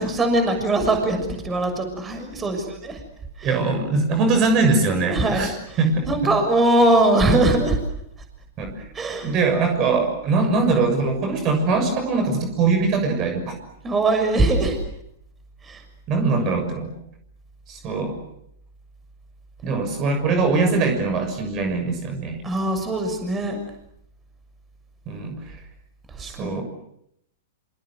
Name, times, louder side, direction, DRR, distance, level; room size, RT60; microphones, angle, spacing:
voice 1, 0.0-3.0 3.4-3.6 5.1-5.8 6.1-7.8 8.9-9.3 13.8-14.8 15.6-15.8 22.4-23.6 26.1-26.6, right 2 dB, 20° right, 6 dB, 6.7 m, -21 dB
voice 2, 3.4-5.5 5.8-6.3 8.6-8.9 9.2-13.5 16.1-16.9 17.7-18.2 19.6-22.4 25.1-25.6 26.2-26.6, right 3 dB, 35° right, 6 dB, 6.6 m, -22 dB
27.0 x 27.0 x 8.0 m, 0.74 s
hypercardioid pair, 110°, 0 cm